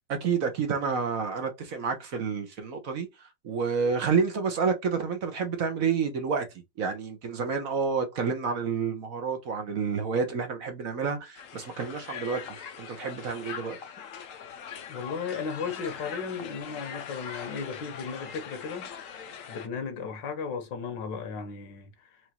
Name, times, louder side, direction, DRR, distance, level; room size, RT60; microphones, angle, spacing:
voice 1, 0.1-3.1 3.4-6.4 6.8-12.4 12.8-13.8, right 5 dB, 55° right, 1.2 m, -29 dB
Crowd, 11.4-19.7, left 7 dB, 60° left, 1.0 m, -42 dB
voice 2, 14.9-18.9 19.5-22.3, left 5 dB, 85° left, 1.7 m, -35 dB
4.7 x 2.7 x 2.8 m
omnidirectional pair, 1.9 m